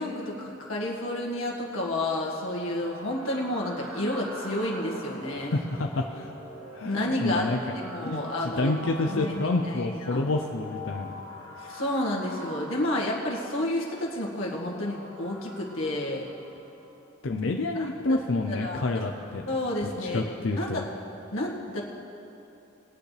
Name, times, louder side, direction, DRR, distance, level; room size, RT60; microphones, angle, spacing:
voice 1, 0.0-5.5 6.8-7.4 7.7-8.8 9.1-10.2 11.6-16.3 17.8-17.9 18.5-18.9 19.5-20.9 21.3-21.8, left 1 dB, 90° left, -3 dB, 1.9 m, -30 dB
sound 1, 2.0-17.1, equal, 80° right, 2.1 m, -44 dB
voice 2, 5.3-6.3 6.7-7.6 8.0-11.1 17.2-19.4 20.0-20.8, left 2 dB, 70° left, 3 dB, 0.6 m, -28 dB
21.0 x 9.1 x 3.4 m, 2.9 s
head